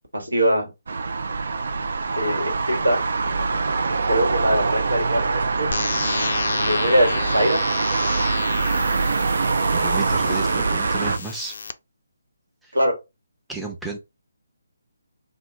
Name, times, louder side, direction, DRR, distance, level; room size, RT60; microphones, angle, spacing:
voice 1, 0.1-0.7 2.2-3.0 4.1-5.7 6.6-7.6 12.7-12.9, equal, 90° right, 1.2 m, -22 dB
sound 1, 0.9-11.2, right 4 dB, 65° right, 0.4 m, -24 dB
sound 2, 5.7-11.7, left 4 dB, 60° left, 0.3 m, -30 dB
voice 2, 9.7-11.5 12.6-12.7 13.5-14.0, right 3 dB, 5° right, 0.6 m, -32 dB
2.9 x 2.2 x 3.3 m
figure-of-eight pair, 150°, 0 cm